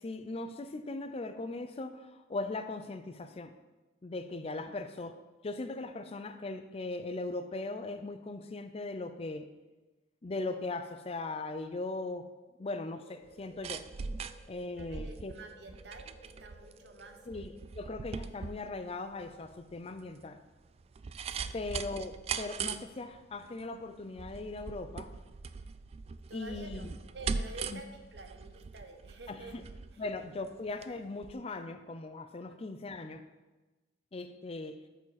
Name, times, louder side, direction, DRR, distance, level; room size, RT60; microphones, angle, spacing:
voice 1, 0.0-3.5 4.0-5.1 5.4-9.5 10.2-12.3 12.6-13.8 14.5-15.3 17.3-20.4 21.5-25.1 26.3-26.9 27.7-27.8 29.3-29.6 30.0-33.2 34.1-34.8, left 2 dB, 35° left, 9 dB, 0.5 m, -39 dB
sound 1, 12.6-17.6, equal, ahead, 1.0 m, -59 dB
sound 2, 13.3-30.9 31.2-31.3, right 5 dB, 35° right, 0.3 m, -41 dB
voice 2, 14.8-17.2 21.3-21.6 26.3-29.5 29.9-30.0 32.4-32.7, right 2 dB, 70° right, 5 dB, 1.0 m, -50 dB
13.0 x 4.8 x 4.1 m, 1.2 s
head